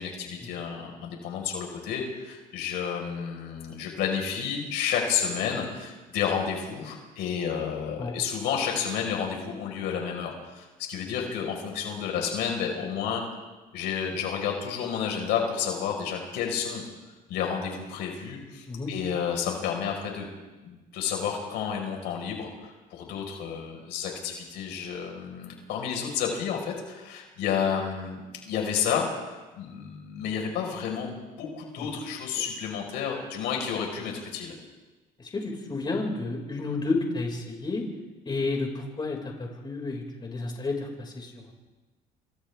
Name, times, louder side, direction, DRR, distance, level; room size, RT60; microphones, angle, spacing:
voice 1, 0.0-13.2 13.7-16.8 17.3-20.3 20.6-34.5, left 7 dB, 85° left, 1 dB, 5.0 m, -31 dB
voice 2, 35.2-37.9 38.2-41.5, left 3 dB, 25° left, 0 dB, 5.5 m, -31 dB
28.5 x 26.5 x 3.6 m, 1.2 s
cardioid pair, 110°, 17 cm